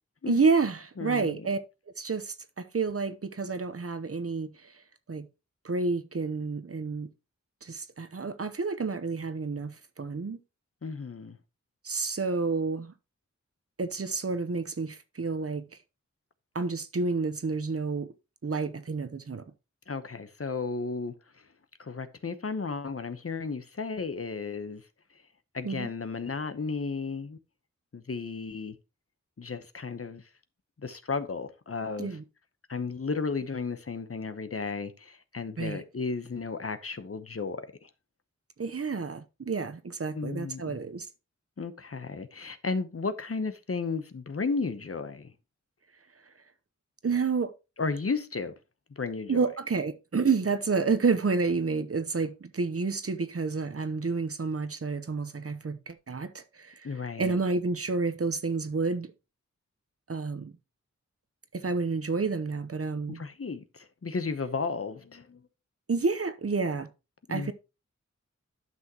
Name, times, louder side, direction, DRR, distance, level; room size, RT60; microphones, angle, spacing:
voice 1, 0.3-1.6 2.0-2.4 2.7-4.5 5.1-5.3 5.6-7.1 7.6-10.4 11.8-12.9 13.8-15.6 16.5-18.1 18.4-19.4 25.6-25.9 32.0-32.2 35.6-35.8 38.6-41.1 47.0-47.5 49.3-56.7 57.2-59.1 60.1-60.5 61.5-63.2 65.9-66.9 67.3-67.5, right 4 dB, 50° right, 0.9 m, -29 dB
voice 2, 1.0-1.5 10.8-11.4 19.9-21.1 21.8-24.8 25.5-27.4 27.9-28.8 29.4-30.2 30.8-32.1 32.7-37.9 40.1-40.8 41.6-45.3 47.8-48.5 49.0-49.5 56.8-57.4 63.1-65.4 67.3-67.5, left 4 dB, 50° left, 0.9 m, -34 dB
11.0 x 6.0 x 2.9 m
wide cardioid pair, 75°, 30 cm